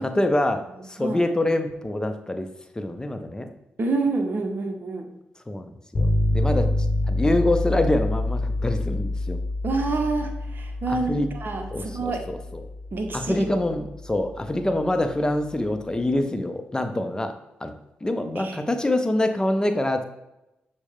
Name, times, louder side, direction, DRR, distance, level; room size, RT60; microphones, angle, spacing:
voice 1, 0.0-3.5 5.5-6.7 7.1-9.4 10.9-11.3 11.7-12.6 13.1-17.3 17.6-17.7 18.0-20.0, left 1 dB, 15° left, 7 dB, 0.6 m, -25 dB
voice 2, 3.8-5.1 9.6-12.3 12.9-13.5 18.4-18.6, right 3 dB, 50° right, 5 dB, 0.7 m, -28 dB
sound 1, 6.0-15.8, left 2 dB, 45° left, 0.8 m, -27 dB
6.1 x 2.1 x 3.5 m, 0.91 s
hypercardioid pair, 40°, 4 cm